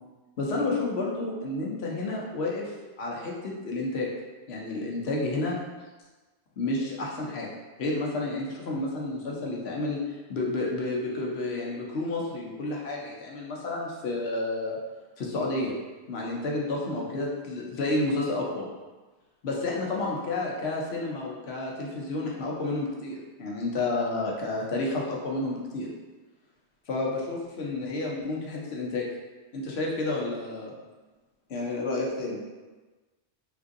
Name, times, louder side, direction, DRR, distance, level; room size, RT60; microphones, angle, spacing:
voice 1, 0.4-4.1 4.5-5.6 6.6-7.5 7.8-14.8 15.2-15.7 16.1-18.7 19.4-25.9 26.9-29.1 29.5-30.7 31.5-32.4, left 2 dB, 75° left, -2 dB, 0.9 m, -30 dB
3.8 x 2.6 x 2.5 m, 1.3 s
omnidirectional pair, 1.1 m